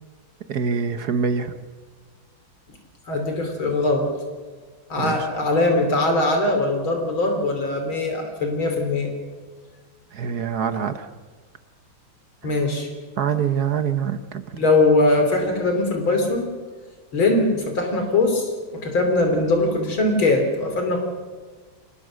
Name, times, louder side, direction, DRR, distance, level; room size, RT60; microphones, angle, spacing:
voice 1, 0.5-1.5 5.0-5.3 10.1-11.1 13.2-14.4, right 7 dB, 55° right, 10 dB, 1.4 m, -24 dB
voice 2, 3.1-4.1 4.9-9.1 12.4-12.9 14.5-16.5 17.1-21.0, left 2 dB, 75° left, 4 dB, 3.9 m, -21 dB
25.5 x 19.0 x 6.4 m, 1.5 s
omnidirectional pair, 2.2 m